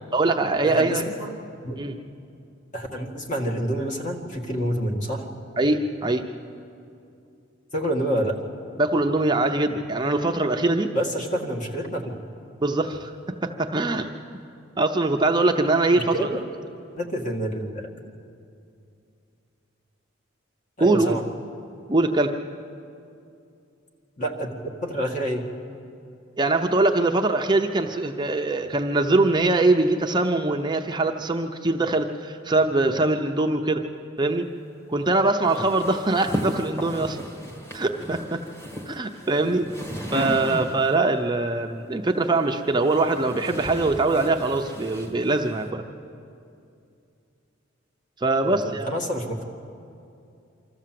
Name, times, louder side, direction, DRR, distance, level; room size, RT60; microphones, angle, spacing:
voice 1, 0.1-1.1 1.8-1.9 5.6-6.3 8.8-10.9 12.6-13.1 13.4-14.1 14.8-16.4 20.8-21.2 21.9-22.3 26.4-33.8 34.2-34.5 34.9-37.2 37.7-38.4 38.9-39.7 40.1-45.8 48.2-48.9, right 2 dB, 25° right, 4 dB, 0.7 m, -22 dB
voice 2, 0.6-1.4 1.6-1.8 2.7-5.3 7.7-8.4 10.9-12.2 16.0-16.4 17.0-17.9 20.8-21.2 24.2-25.5 48.4-49.4, right 1 dB, 40° left, 1 dB, 2.0 m, -28 dB
sound 1, 35.4-41.1 42.1-45.7, equal, 15° left, 1.7 m, -36 dB
25.0 x 14.0 x 7.7 m, 2.6 s
head